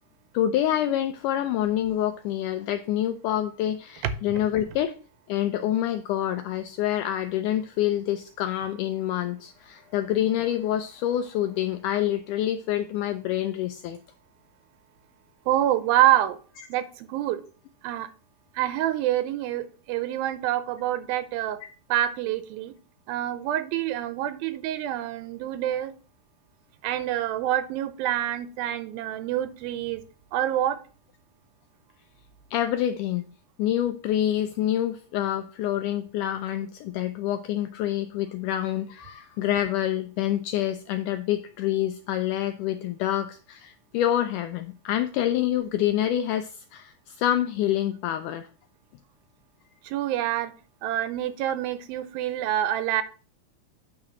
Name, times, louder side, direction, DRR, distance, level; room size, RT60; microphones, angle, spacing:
voice 1, 0.3-4.9 5.3-14.0 32.5-33.3 33.6-48.5, left 12 dB, 85° left, 8 dB, 1.8 m, -27 dB
voice 2, 15.5-16.4 16.7-17.4 17.8-18.1 18.6-21.6 21.9-22.7 23.1-25.9 26.8-30.0 30.3-30.8 49.9-50.5 50.8-53.0, right 12 dB, 90° right, 12 dB, 2.5 m, -26 dB
8.9 x 3.8 x 5.9 m, 0.38 s
omnidirectional pair, 4.1 m